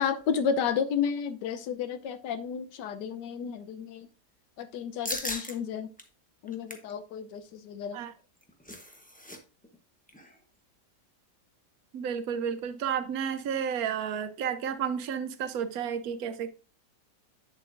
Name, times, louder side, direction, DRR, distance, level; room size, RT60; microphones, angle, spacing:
voice 1, 0.0-4.1 4.6-5.9 6.4-8.0, left 7 dB, 90° left, 1.3 m, -32 dB
sound 1, 5.0-5.5 6.0-6.1 6.5-6.9 8.2-9.4 9.6-9.8 10.1-10.4, left 1 dB, 10° left, 0.6 m, -37 dB
voice 2, 11.9-16.5, right 8 dB, 65° right, 1.1 m, -31 dB
8.8 x 7.3 x 2.5 m
omnidirectional pair, 1.8 m